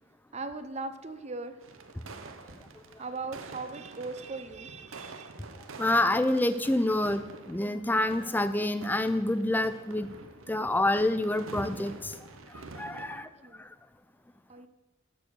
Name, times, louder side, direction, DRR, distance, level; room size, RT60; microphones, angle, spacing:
voice 1, 0.3-1.6 3.0-5.5 13.1-13.6 14.5-14.7, right 3 dB, 30° right, 10 dB, 0.6 m, -39 dB
sound 1, 1.6-13.2, right 3 dB, 80° right, 0.8 m, -47 dB
voice 2, 5.8-10.1 10.5-12.2 12.5-13.3 13.6-13.7, left 1 dB, 10° left, 12 dB, 0.4 m, -27 dB
13.0 x 4.7 x 6.9 m, 1.2 s
head